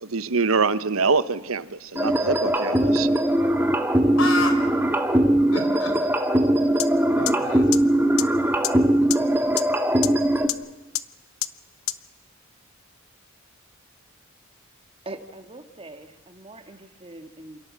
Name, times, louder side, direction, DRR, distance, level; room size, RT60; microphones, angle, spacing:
voice 1, 0.0-3.1, right 4 dB, 80° right, 1.1 m, -24 dB
sound 1, 2.0-10.5, right 1 dB, 10° right, 1.8 m, -21 dB
voice 2, 4.2-4.6 5.5-5.9 7.2-8.3, left 2 dB, 75° left, 5.1 m, -30 dB
sound 2, 6.8-6.9 7.3-7.4 7.7-7.8 8.2-8.3 8.6-8.7 9.1-9.2 9.6-9.7 10.0-10.1 10.5-10.6 10.9-11.0 11.4-11.5 11.9-12.0, left 14 dB, 90° left, 1.0 m, -24 dB
voice 3, 15.1-17.6, right 2 dB, 25° right, 1.9 m, -42 dB
28.5 x 27.5 x 7.5 m
head